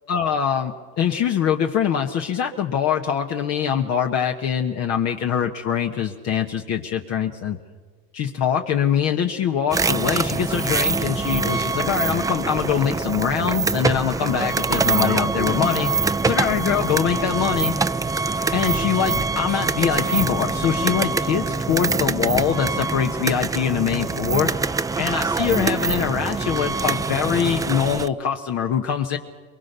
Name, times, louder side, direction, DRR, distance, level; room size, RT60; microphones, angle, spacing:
voice 1, 0.1-7.6 8.1-15.9 16.2-17.7 18.5-24.5 25.0-29.2, left 8 dB, 60° left, 4 dB, 1.3 m, -23 dB
sound 1, 9.7-28.1, right 4 dB, 10° right, 0.5 m, -24 dB
22.5 x 22.0 x 6.8 m, 1.5 s
supercardioid pair, 90°, 29 cm